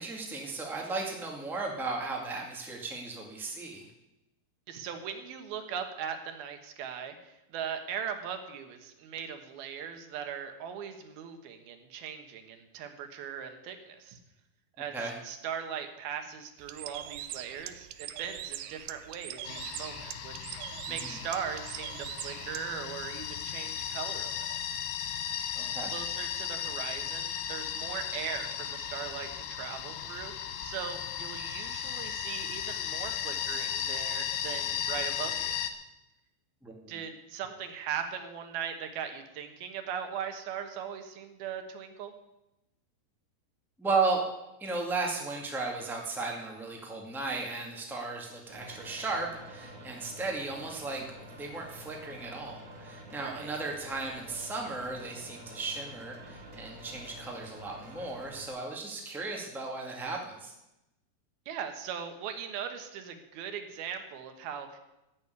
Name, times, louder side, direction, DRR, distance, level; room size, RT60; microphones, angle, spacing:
voice 1, 0.0-3.8 14.9-15.1 25.5-25.9 36.6-36.9 43.8-44.2 44.6-60.5, right 3 dB, 5° right, 0 dB, 0.4 m, -35 dB
voice 2, 4.7-14.2 14.8-15.0 15.2-24.6 25.9-35.6 36.9-42.1 53.2-53.5 61.5-64.8, right 8 dB, 70° right, 6 dB, 3.0 m, -39 dB
Bird, 16.6-22.7, right 12 dB, 90° right, 1.8 m, -42 dB
sound 1, 19.4-35.7, left 9 dB, 85° left, 3.1 m, -36 dB
sound 2, 48.5-58.5, equal, 40° right, 1.2 m, -48 dB
14.0 x 6.5 x 9.4 m, 0.92 s
omnidirectional pair, 4.7 m